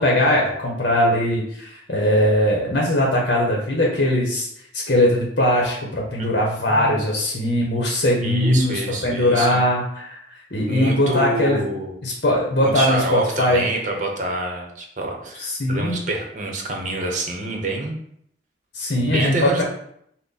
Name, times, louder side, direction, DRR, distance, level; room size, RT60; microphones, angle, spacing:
voice 1, 0.0-4.5 4.7-10.2 10.5-11.6 12.0-13.6 15.4-16.0 18.7-19.6, left 1 dB, 55° left, -2 dB, 0.9 m, -20 dB
voice 2, 6.6-7.1 8.2-9.6 10.7-11.9 12.6-18.0 19.0-19.6, right 2 dB, 45° right, 1 dB, 0.9 m, -27 dB
6.0 x 2.2 x 4.0 m, 0.71 s
head